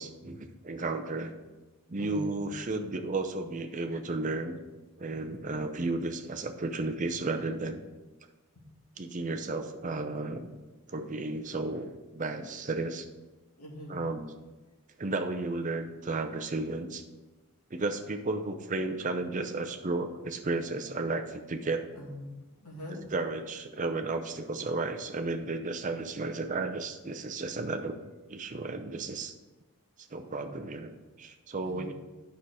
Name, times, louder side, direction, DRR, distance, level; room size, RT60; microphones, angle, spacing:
voice 1, 0.0-1.3 1.9-4.6 5.0-7.9 9.0-10.5 10.9-13.1 13.9-14.3 15.0-17.0 17.7-21.8 23.1-28.0 28.3-29.3 30.1-31.9, right 3 dB, 35° right, 5 dB, 0.7 m, -33 dB
voice 2, 2.0-2.3 5.3-5.4 8.6-8.7 13.6-14.0 21.9-22.3 22.6-23.0 30.4-30.5 31.6-31.9, left 1 dB, 85° left, -2 dB, 2.3 m, -42 dB
9.1 x 5.8 x 4.8 m, 1.2 s
head